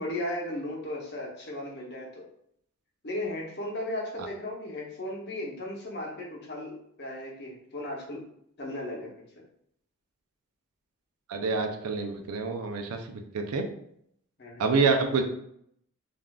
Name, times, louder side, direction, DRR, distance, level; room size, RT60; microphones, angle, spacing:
voice 1, 0.0-2.2 3.0-8.2 8.6-9.1 14.4-14.6, left 1 dB, 50° left, -2 dB, 0.8 m, -36 dB
voice 2, 11.3-13.7 14.6-15.2, right 4 dB, 85° right, 5 dB, 0.4 m, -27 dB
3.4 x 2.4 x 2.3 m, 0.71 s
head